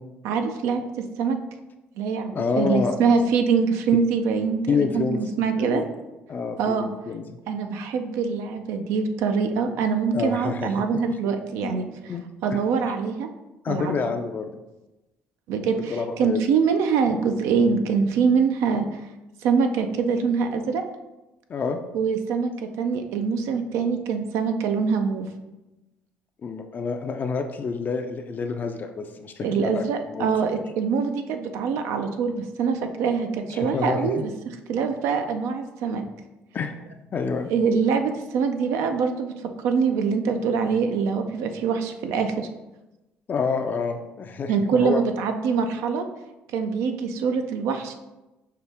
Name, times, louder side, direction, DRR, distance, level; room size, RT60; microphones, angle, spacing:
voice 1, 0.2-0.8 1.2-1.4 2.0-5.8 6.6-6.9 7.5-11.9 12.4-13.3 13.7-14.0 15.5-19.0 19.4-20.8 21.9-22.5 22.8-25.3 29.4-34.3 34.7-36.0 37.5-39.3 39.6-42.5 44.5-46.1 46.5-47.9, right 5 dB, 75° right, 6 dB, 0.4 m, -24 dB
voice 2, 2.3-3.0 4.7-5.2 5.5-5.9 6.3-7.4 10.1-10.7 11.2-11.3 11.6-11.8 12.1-12.2 12.5-12.6 13.6-14.6 15.9-16.4 21.5-21.8 26.4-30.3 33.5-34.2 36.5-36.7 37.1-37.5 43.3-45.0, left 5 dB, 40° left, 5 dB, 0.4 m, -28 dB
5.6 x 2.0 x 3.4 m, 1.0 s
supercardioid pair, 80°, 5 cm